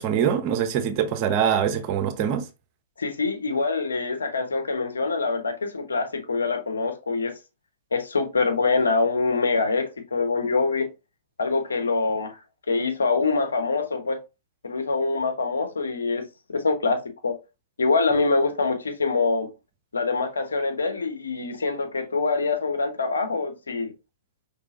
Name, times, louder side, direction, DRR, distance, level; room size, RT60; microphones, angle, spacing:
voice 1, 0.0-2.4, right 8 dB, 40° right, 0.9 m, -23 dB
voice 2, 3.0-7.3 7.9-10.9 11.4-12.4 12.7-14.2 14.6-17.4 17.8-19.5 19.9-23.9, left 4 dB, 85° left, 1.1 m, -25 dB
5.4 x 3.4 x 2.5 m
hypercardioid pair, 115°, 0 cm